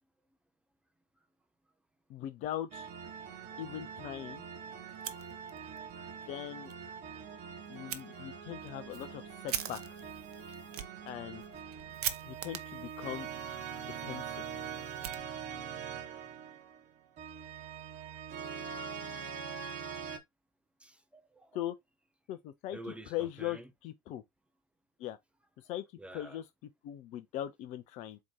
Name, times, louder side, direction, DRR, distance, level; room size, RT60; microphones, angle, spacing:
voice 1, 2.1-2.9 3.6-4.4 6.3-6.7 7.7-9.8 11.0-11.4 12.3-13.3 13.9-14.4 21.5-21.7 22.3-22.8 23.1-24.2 25.0-25.2 25.6-25.8 26.1-26.4 26.8-28.2, left 12 dB, 35° left, 0.4 m, -40 dB
sound 1, 2.7-20.2, right 7 dB, 30° right, 1.1 m, -43 dB
Fire, 4.9-5.8 6.1-6.2 6.7-6.8 7.9-8.0 8.6-15.7, right 10 dB, 60° right, 0.7 m, -43 dB
voice 2, 20.8-21.6 22.7-23.7 26.0-26.4, right 1 dB, 5° right, 0.6 m, -48 dB
4.3 x 2.8 x 4.3 m
figure-of-eight pair, 90°, 21 cm